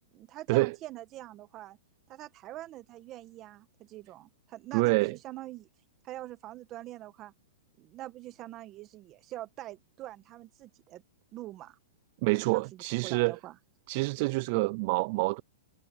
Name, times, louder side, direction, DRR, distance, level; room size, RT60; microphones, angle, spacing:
voice 1, 0.1-1.8 2.1-5.7 6.0-7.3 7.8-11.0 11.3-11.8 12.4-13.5, right 15 dB, 25° right, 1.7 m, -44 dB
voice 2, 4.7-5.2 12.2-13.4 13.9-15.4, right 25 dB, 45° right, 0.3 m, -27 dB
hypercardioid pair, 155°, 0 cm